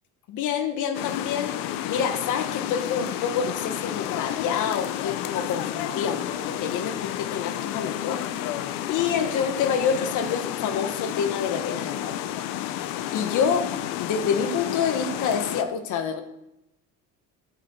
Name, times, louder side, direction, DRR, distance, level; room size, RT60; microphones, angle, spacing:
voice 1, 0.3-8.2 8.9-16.2, left 7 dB, 65° left, 6 dB, 1.6 m, -28 dB
sound 1, 0.9-15.6, left 12 dB, 85° left, 0.9 m, -31 dB
9.8 x 7.4 x 8.1 m, 0.85 s
cardioid pair, 120°, 33 cm